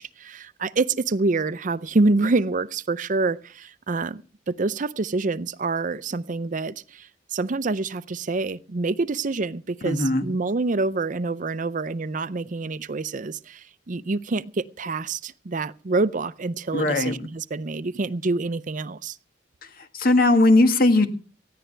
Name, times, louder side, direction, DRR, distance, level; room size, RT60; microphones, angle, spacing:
voice 1, 0.0-4.2 4.5-19.2, right 3 dB, 45° right, 0.6 m, -26 dB
voice 2, 9.8-10.3 16.7-17.2 19.6-21.1, left 2 dB, 55° left, 1.7 m, -19 dB
19.0 x 14.5 x 3.3 m
head